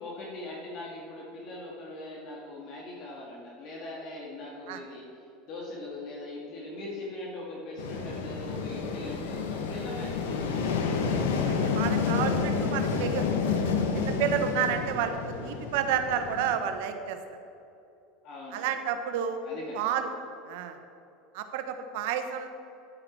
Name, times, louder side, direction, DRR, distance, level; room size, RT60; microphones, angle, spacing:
voice 1, 0.0-11.1 18.2-18.7 19.4-19.8, left 2 dB, 55° left, -3 dB, 2.1 m, -41 dB
sound 1, 7.8-16.5, left 5 dB, 80° left, 1.1 m, -29 dB
voice 2, 11.4-13.2 13.9-15.2 15.4-17.2 18.5-19.4 19.7-20.1 20.4-20.8 21.3-22.5, right 8 dB, 70° right, 7 dB, 1.0 m, -30 dB
10.5 x 8.9 x 4.6 m, 2.8 s
hypercardioid pair, 95°, 0 cm